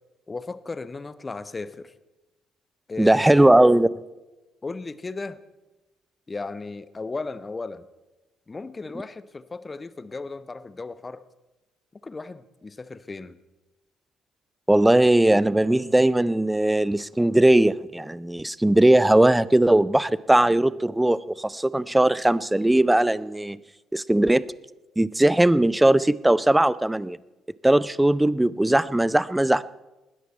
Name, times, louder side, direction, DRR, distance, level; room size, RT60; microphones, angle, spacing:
voice 1, 0.3-1.9 2.9-3.6 4.6-5.4 6.3-7.9 8.5-11.2 12.0-13.4, left 3 dB, 25° left, 15 dB, 0.9 m, -35 dB
voice 2, 3.0-3.9 14.7-23.6 23.9-24.5 25.0-27.2 27.6-29.6, right 1 dB, 10° right, 19 dB, 0.5 m, -19 dB
20.0 x 13.0 x 4.4 m, 1.1 s
figure-of-eight pair, 45°, 0 cm